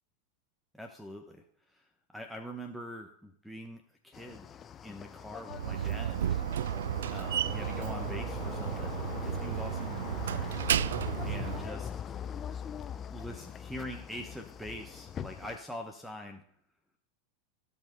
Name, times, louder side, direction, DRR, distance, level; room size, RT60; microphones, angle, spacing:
voice 1, 0.7-4.5 4.8-6.3 7.1-10.5 11.2-11.9 13.1-16.4, equal, ahead, 5 dB, 1.1 m, -44 dB
sound 1, 4.1-15.6, left 8 dB, 30° left, 0.6 m, -41 dB
Slam, 5.5-11.7, right 10 dB, 80° right, 0.3 m, -33 dB
15.5 x 5.5 x 5.3 m, 0.70 s
hypercardioid pair, 105°, 0 cm